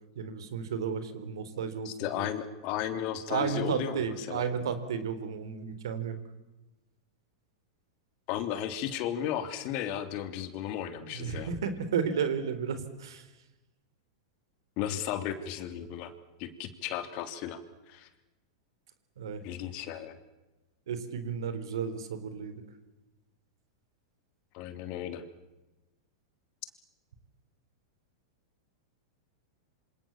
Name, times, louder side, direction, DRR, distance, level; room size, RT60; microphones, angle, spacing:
voice 1, 0.2-2.1 3.3-6.2 11.1-13.2 19.2-19.4 20.9-22.6, right 7 dB, 75° right, 11 dB, 3.9 m, -33 dB
voice 2, 1.8-4.4 8.3-11.5 14.8-16.1 16.4-17.6 17.9-18.1 19.4-20.1 24.5-25.2, left 10 dB, 50° left, 9 dB, 3.2 m, -34 dB
27.5 x 26.5 x 7.3 m, 1.0 s
hypercardioid pair, 100°, 2 cm